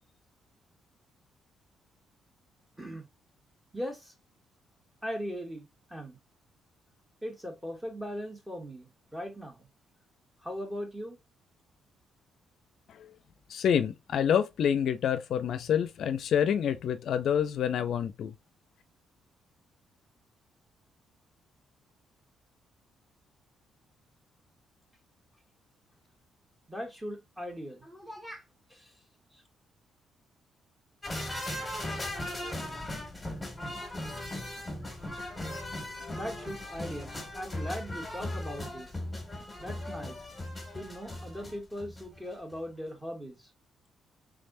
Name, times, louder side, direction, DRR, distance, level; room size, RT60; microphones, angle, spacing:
voice 1, 3.7-4.1 5.0-6.2 7.2-9.7 10.4-11.2 26.7-28.9 29.3-29.4 36.1-38.9 39.6-40.2 40.7-43.5, equal, 10° right, 1.4 m, -39 dB
voice 2, 13.5-18.3, left 8 dB, 70° left, 0.4 m, -27 dB
sound 1, 31.0-42.2 42.5-42.6, left 1 dB, 10° left, 1.8 m, -38 dB
3.6 x 3.4 x 2.6 m
cardioid pair, 90°, 0 cm